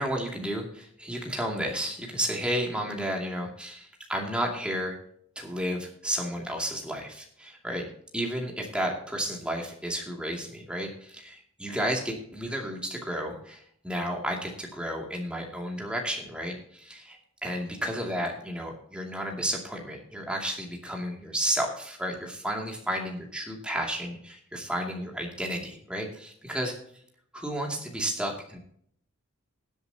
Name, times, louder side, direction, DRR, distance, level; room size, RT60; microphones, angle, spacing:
voice 1, 0.0-5.0 5.4-7.9 8.1-26.7 27.3-28.6, equal, 5° right, 0 dB, 2.4 m, -32 dB
20.5 x 8.0 x 2.8 m, 0.65 s
head